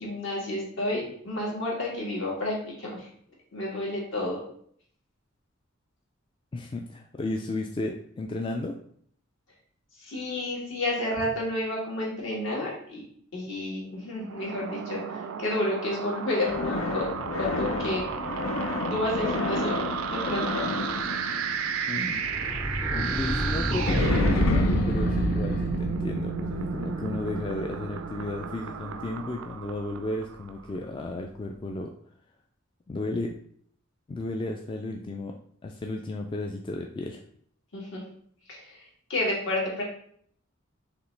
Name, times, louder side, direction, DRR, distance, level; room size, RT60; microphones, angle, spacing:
voice 1, 0.0-3.1 3.5-4.4 10.0-13.0 13.3-17.1 17.4-18.1 18.9-20.6 37.7-38.0 38.5-38.8 39.1-39.8, left 1 dB, 65° left, -4 dB, 1.7 m, -30 dB
voice 2, 6.5-8.8 21.9-22.2 22.9-31.9 32.9-33.3 34.1-37.2, left 2 dB, 25° left, 2 dB, 0.3 m, -34 dB
sound 1, 14.1-30.5, right 6 dB, 85° right, 0.4 m, -33 dB
sound 2, 16.5-22.4 23.9-29.2, left 2 dB, 85° left, 0.6 m, -31 dB
sound 3, 22.1-26.1, equal, 50° left, 1.0 m, -30 dB
4.9 x 3.1 x 3.2 m, 0.63 s
head